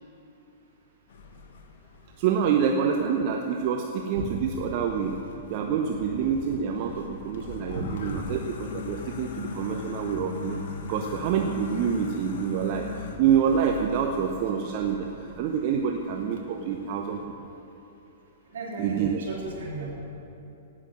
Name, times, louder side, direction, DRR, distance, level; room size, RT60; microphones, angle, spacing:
sound 1, 1.1-3.4 4.2-17.3, left 5 dB, 50° left, 1.2 m, -41 dB
voice 1, 2.2-5.2 5.5-10.6 10.9-12.9 13.2-17.2 18.8-19.2, right 7 dB, 40° right, 3 dB, 0.8 m, -27 dB
voice 2, 18.5-19.9, right 3 dB, 60° right, -3 dB, 3.4 m, -36 dB
17.5 x 6.3 x 7.8 m, 2.8 s
figure-of-eight pair, 105°, 0 cm